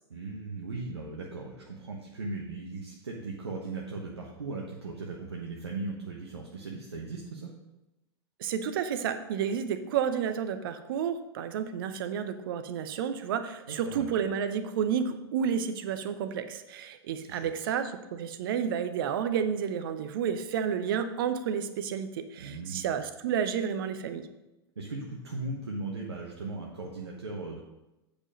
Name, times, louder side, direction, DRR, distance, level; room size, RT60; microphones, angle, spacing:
voice 1, 0.1-7.5 13.7-14.1 17.2-17.7 22.4-22.9 24.7-27.6, right 3 dB, 75° right, -2 dB, 1.2 m, -38 dB
voice 2, 8.4-24.3, right 7 dB, 55° right, 10 dB, 0.8 m, -31 dB
8.6 x 5.2 x 5.2 m, 0.96 s
figure-of-eight pair, 90°, 14 cm